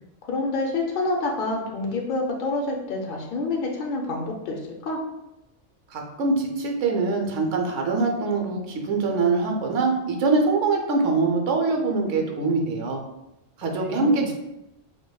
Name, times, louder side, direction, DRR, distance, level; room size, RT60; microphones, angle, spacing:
voice 1, 0.3-5.0 13.8-14.2, left 2 dB, 60° left, -1 dB, 0.6 m, -28 dB
voice 2, 5.9-13.0 13.6-14.3, right 3 dB, 85° right, 2 dB, 1.0 m, -23 dB
5.0 x 2.1 x 2.2 m, 0.91 s
omnidirectional pair, 1.2 m